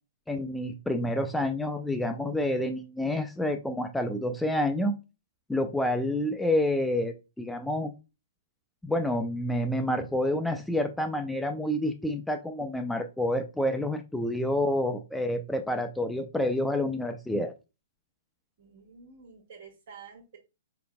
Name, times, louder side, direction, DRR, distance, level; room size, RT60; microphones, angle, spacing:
voice 1, 0.3-4.9 5.5-7.9 8.8-17.5, left 1 dB, 5° left, 5 dB, 0.4 m, -28 dB
voice 2, 18.6-20.4, right 5 dB, 55° right, 5 dB, 1.4 m, -49 dB
5.1 x 3.9 x 2.2 m, 0.28 s
figure-of-eight pair, 115°, 0 cm